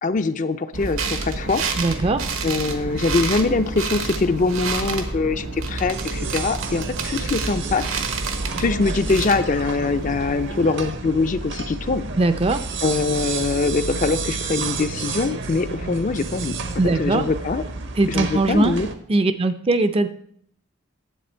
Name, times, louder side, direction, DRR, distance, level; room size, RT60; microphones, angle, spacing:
voice 1, 0.0-1.6 2.4-8.0 8.6-12.0 12.8-16.6 17.0-17.6 18.1-18.9, left 3 dB, 35° left, 10 dB, 0.4 m, -23 dB
sound 1, 0.7-10.9, right 3 dB, 75° right, 1.1 m, -29 dB
voice 2, 1.8-2.2 12.2-12.6 16.8-17.3 17.9-18.7 19.1-20.1, right 2 dB, 25° right, 11 dB, 0.4 m, -20 dB
sound 2, 5.9-18.9, right 4 dB, 55° right, 0.8 m, -31 dB
10.5 x 7.6 x 4.4 m, 0.66 s
head